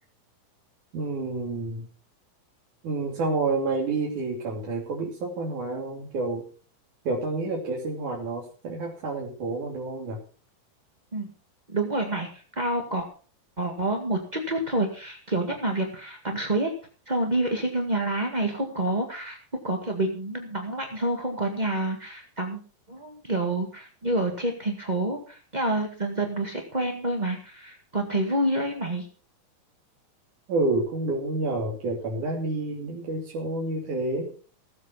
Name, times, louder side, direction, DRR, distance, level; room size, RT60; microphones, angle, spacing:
voice 1, 0.9-1.9 2.8-6.4 7.1-10.2 30.5-34.3, right 3 dB, 60° right, -3 dB, 4.3 m, -29 dB
voice 2, 11.7-13.1 13.6-16.7 17.1-19.4 19.6-22.6 22.9-29.1, right 1 dB, 25° right, 3 dB, 0.8 m, -28 dB
19.0 x 8.3 x 5.7 m, 0.40 s
omnidirectional pair, 4.1 m